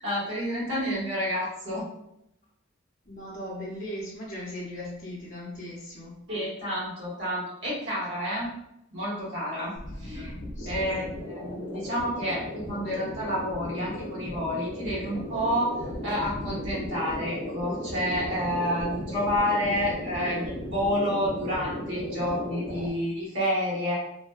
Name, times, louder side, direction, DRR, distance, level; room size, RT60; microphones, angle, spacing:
voice 1, 0.0-1.9 6.3-8.5 8.9-9.7 10.0-10.3 10.6-24.0, equal, 60° right, -7 dB, 1.3 m, -29 dB
voice 2, 3.1-6.2 9.9-10.1 10.6-11.0, left 1 dB, 35° left, -5 dB, 0.6 m, -38 dB
sound 1, 9.7-22.9, left 1 dB, 85° left, 0.5 m, -36 dB
2.5 x 2.2 x 2.2 m, 0.80 s
head